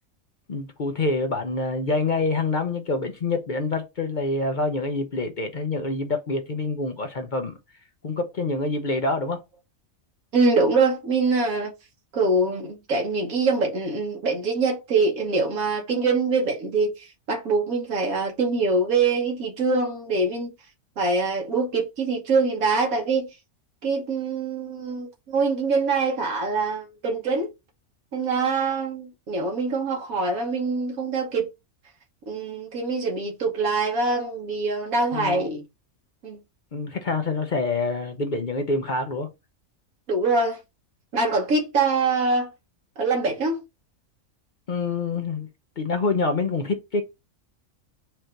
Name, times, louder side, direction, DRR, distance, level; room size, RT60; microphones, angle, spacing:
voice 1, 0.5-7.6 8.0-9.4 35.1-35.5 36.7-39.3 44.7-45.5 45.8-47.0, left 3 dB, 45° left, 0.7 m, -26 dB
voice 2, 10.3-11.7 12.1-20.5 21.0-23.3 23.8-27.5 28.1-31.5 32.3-35.6 36.2-36.4 40.1-40.6 41.1-42.5 43.0-43.6, right 3 dB, 85° right, 1.6 m, -24 dB
4.4 x 2.6 x 4.4 m
omnidirectional pair, 1.4 m